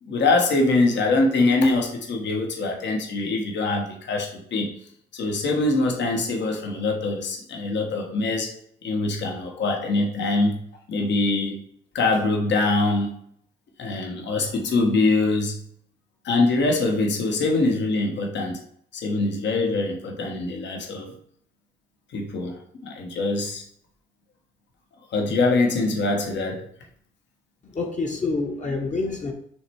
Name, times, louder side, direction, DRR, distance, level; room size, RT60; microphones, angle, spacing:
voice 1, 0.0-4.7 5.1-8.5 8.8-10.6 10.9-11.6 11.9-13.1 13.8-15.6 16.2-18.6 18.9-21.1 22.1-23.6 25.1-26.7, left 2 dB, 65° left, 2 dB, 1.4 m, -23 dB
voice 2, 27.6-29.3, left 3 dB, 35° left, 1 dB, 1.1 m, -27 dB
6.1 x 3.3 x 4.7 m, 0.64 s
cardioid pair, 90°, 20 cm